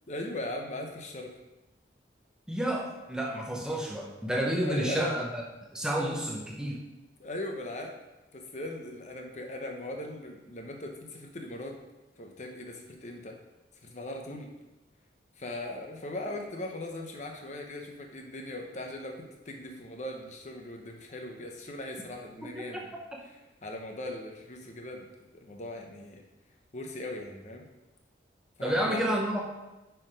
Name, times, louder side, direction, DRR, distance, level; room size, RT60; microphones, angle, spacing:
voice 1, 0.1-1.3 4.7-5.2 7.2-8.0 8.3-11.8 12.2-13.4 13.8-14.5 15.4-22.9 23.2-25.1 25.4-26.2 26.7-27.7 28.6-29.0, left 1 dB, 40° left, 2 dB, 0.8 m, -39 dB
voice 2, 2.5-5.4 5.7-6.8 22.4-22.5 28.6-29.4, right 1 dB, 5° right, -1 dB, 0.8 m, -30 dB
5.8 x 4.6 x 4.9 m, 1.1 s
head